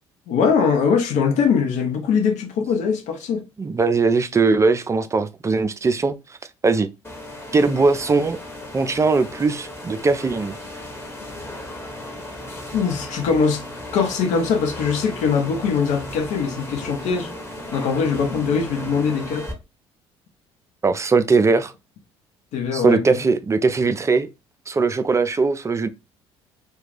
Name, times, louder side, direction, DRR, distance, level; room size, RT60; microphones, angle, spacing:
voice 1, 0.3-3.4 12.7-13.6 13.9-17.3 17.7-19.5 22.5-23.2, left 6 dB, 60° left, 0.7 m, -21 dB
voice 2, 3.6-6.1 6.6-6.9 7.5-8.4 8.7-10.5 20.8-21.7 22.7-24.3 24.7-25.9, right 4 dB, 20° right, 0.4 m, -20 dB
sound 1, 7.0-19.5, left 1 dB, 15° left, 1.0 m, -35 dB
2.4 x 2.2 x 3.2 m
hypercardioid pair, 55°, 14 cm